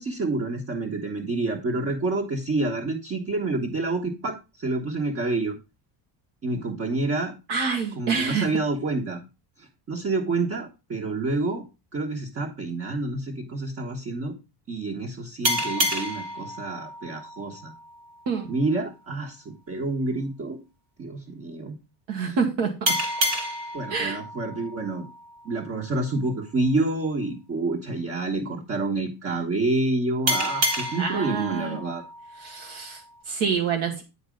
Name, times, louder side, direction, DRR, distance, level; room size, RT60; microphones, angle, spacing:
voice 1, 0.0-5.6 6.4-7.3 8.0-9.2 9.6-11.6 11.9-14.4 14.7-17.7 18.4-20.6 21.0-21.8 22.2-22.4 23.7-25.1 25.4-32.0, right 2 dB, 35° right, -1 dB, 1.4 m, -28 dB
voice 2, 7.5-8.5 18.3-18.5 22.1-23.0 23.9-24.2 31.0-31.8 32.4-34.0, right 5 dB, 85° right, 3 dB, 1.9 m, -27 dB
sound 1, 15.4-18.7 22.9-26.1 30.3-33.2, equal, 60° right, 2.4 m, -30 dB
10.0 x 4.3 x 5.2 m, 0.27 s
cardioid pair, 145°, 44 cm